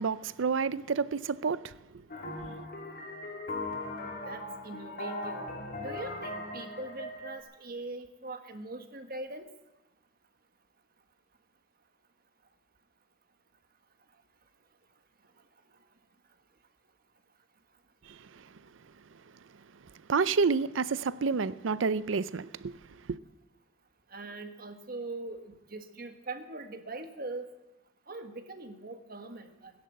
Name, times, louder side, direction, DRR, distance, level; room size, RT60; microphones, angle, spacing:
voice 1, 0.0-1.7 2.3-2.6 18.1-18.2 20.1-22.7 23.1-23.2, right 5 dB, 80° right, 0.6 m, -29 dB
sound 1, 2.1-7.4, left 2 dB, 50° left, 3.0 m, -39 dB
voice 2, 4.3-5.5 5.8-9.5 24.1-27.5 28.1-29.7, right 2 dB, 50° right, 1.4 m, -41 dB
16.5 x 10.5 x 7.8 m
head